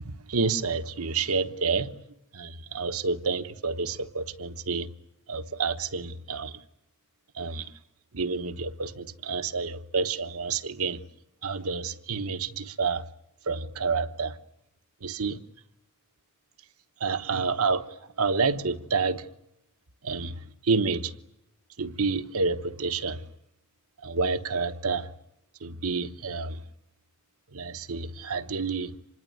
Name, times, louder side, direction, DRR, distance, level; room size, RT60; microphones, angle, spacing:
voice 1, 0.3-2.0 2.3-4.9 5.3-6.6 7.3-7.7 8.1-11.0 11.4-13.0 13.5-14.4 15.0-15.4 17.0-19.3 20.0-21.1 21.8-23.2 24.0-25.1 25.6-26.6 27.5-28.9, right 4 dB, 85° right, 1.1 m, -29 dB
26.0 x 20.5 x 9.5 m
head